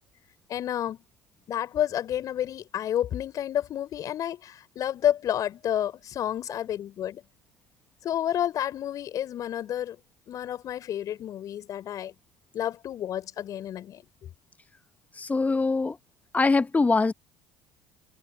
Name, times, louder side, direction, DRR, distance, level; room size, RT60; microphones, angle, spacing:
voice 1, 0.5-1.0 1.5-7.2 8.0-10.0 10.3-12.1 12.5-14.0, left 11 dB, 50° left, 4.4 m, -30 dB
voice 2, 15.2-16.0 16.3-17.1, left 3 dB, 20° left, 1.4 m, -23 dB
hypercardioid pair, 65°, 8 cm